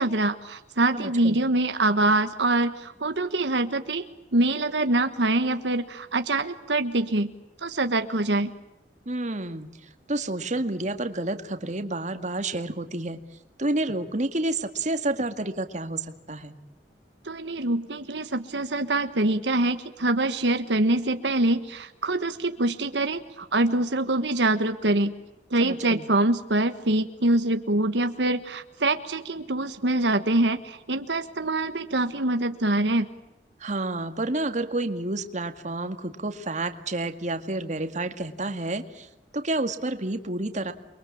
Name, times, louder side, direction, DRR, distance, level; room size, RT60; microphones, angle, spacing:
voice 1, 0.0-7.3 7.6-8.5 17.2-25.1 25.5-33.1, right 2 dB, 80° right, 9 dB, 1.4 m, -24 dB
voice 2, 0.9-1.4 9.1-9.7 10.1-13.2 13.6-16.5 25.6-26.1 33.6-39.1 39.3-40.7, right 2 dB, 45° right, 8 dB, 2.0 m, -29 dB
29.0 x 23.0 x 8.7 m, 0.92 s
head